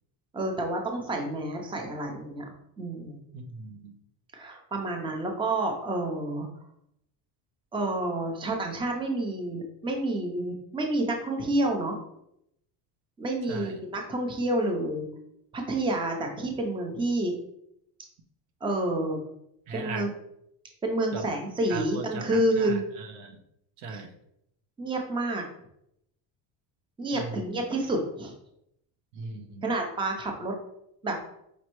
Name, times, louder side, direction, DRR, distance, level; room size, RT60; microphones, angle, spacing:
voice 1, 0.3-2.4 2.8-3.2 4.3-6.5 7.7-12.0 13.2-15.1 15.5-17.3 18.6-19.2 19.7-20.1 20.8-22.9 23.9-24.0 24.8-25.4 27.0-28.3 29.6-30.5 31.0-31.2, right 1 dB, 10° right, 3 dB, 0.5 m, -29 dB
voice 2, 3.3-4.0 13.5-13.8 19.7-20.1 21.1-21.3 21.7-23.4 23.8-24.1 27.1-27.6 29.1-29.7, right 4 dB, 85° right, 5 dB, 0.8 m, -38 dB
5.3 x 3.1 x 3.0 m, 0.78 s
cardioid pair, 130°, 48 cm